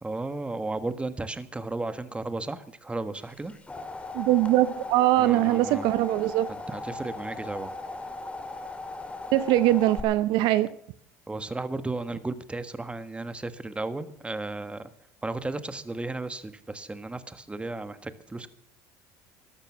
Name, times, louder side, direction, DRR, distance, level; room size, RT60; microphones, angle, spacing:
voice 1, 0.0-3.5 5.2-5.9 6.7-7.7 10.3-10.4 11.3-14.8 15.2-18.5, right 2 dB, 15° right, 12 dB, 1.4 m, -34 dB
sound 1, 3.3-10.0, left 2 dB, 15° left, 2.3 m, -38 dB
voice 2, 4.1-6.5 9.3-10.7, right 15 dB, 65° right, 15 dB, 0.8 m, -22 dB
14.0 x 11.5 x 7.2 m, 0.66 s
hypercardioid pair, 80°, 9 cm